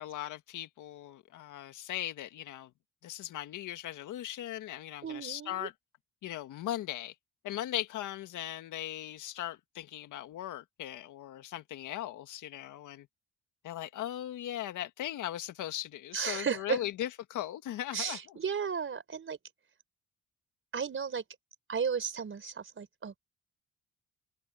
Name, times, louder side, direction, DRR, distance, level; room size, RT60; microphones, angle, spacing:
voice 1, 0.0-2.7 3.0-5.7 6.2-7.1 7.4-13.1 13.6-18.4, left 13 dB, 80° left, 1.8 m, -38 dB
voice 2, 5.0-5.7 16.1-16.8 17.9-19.4 20.7-21.2 21.7-23.2, right 6 dB, 40° right, 4.8 m, -34 dB
cardioid pair, 90°, 30 cm